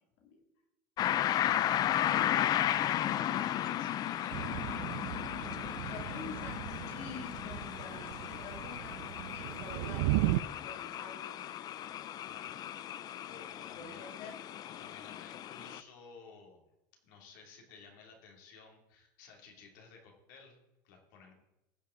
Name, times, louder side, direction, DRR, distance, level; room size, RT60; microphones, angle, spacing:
sound 1, 1.0-15.8, left 11 dB, 40° left, 0.4 m, -35 dB
voice 1, 1.1-6.4 11.8-11.9 12.2-13.0 13.3-14.1 14.7-16.6 17.0-20.6 20.8-21.3, left 5 dB, 80° left, 1 dB, 2.6 m, -56 dB
Thunder / Rain, 4.3-10.4, right 17 dB, 75° right, 0.4 m, -36 dB
voice 2, 5.9-11.4 13.7-14.4, left 4 dB, 60° left, 3 dB, 2.4 m, -48 dB
16.0 x 5.6 x 3.8 m, 0.93 s
supercardioid pair, 115°, 10 cm